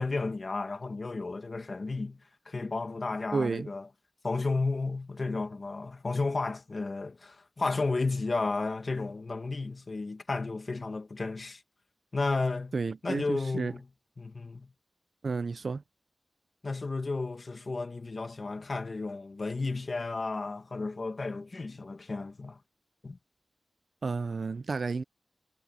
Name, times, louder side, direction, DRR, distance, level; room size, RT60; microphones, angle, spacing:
voice 1, 0.0-2.2 2.5-3.9 4.2-11.6 12.1-12.7 13.0-13.8 14.2-14.7 16.6-22.6 23.0-23.2, left 3 dB, 50° left, 2.0 m, -33 dB
voice 2, 3.3-3.7 12.7-13.7 15.2-15.8 24.0-25.0, right 4 dB, 65° right, 0.7 m, -31 dB
wide cardioid pair, 80°, 0 cm